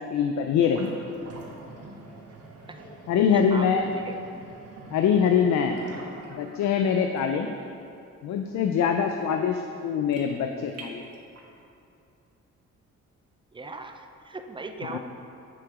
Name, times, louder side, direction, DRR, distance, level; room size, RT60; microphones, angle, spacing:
voice 1, 0.1-0.9 3.1-3.9 4.9-5.8 6.3-7.5 8.2-11.0 14.9-15.0, left 7 dB, 65° left, 5 dB, 0.6 m, -24 dB
sound 1, 0.6-11.6, right 3 dB, 50° right, 1.5 m, -45 dB
voice 2, 3.3-4.2 13.5-15.0, right 3 dB, 15° right, 6 dB, 0.6 m, -39 dB
7.9 x 5.9 x 4.9 m, 2.6 s
cardioid pair, 90°, 30 cm